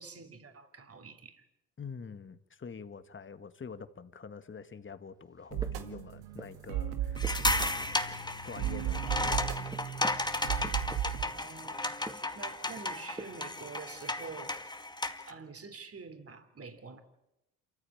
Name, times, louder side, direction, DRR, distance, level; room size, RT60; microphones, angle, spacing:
voice 1, 0.0-1.5 11.2-12.0 12.3-14.6 15.3-17.0, right 5 dB, 35° right, 8 dB, 3.5 m, -47 dB
voice 2, 1.8-7.2 7.6-7.9 8.4-9.8, left 5 dB, 30° left, 11 dB, 1.7 m, -46 dB
sound 1, 5.3-6.7 7.0-8.6 8.8-11.4 11.9-13.6, right 1 dB, 10° right, 2.0 m, -49 dB
sound 2, 5.5-11.2, right 10 dB, 90° right, 2.0 m, -35 dB
sound 3, 7.2-15.3, left 2 dB, 10° left, 2.0 m, -34 dB
27.0 x 14.5 x 8.9 m, 0.90 s
supercardioid pair, 65°, 42 cm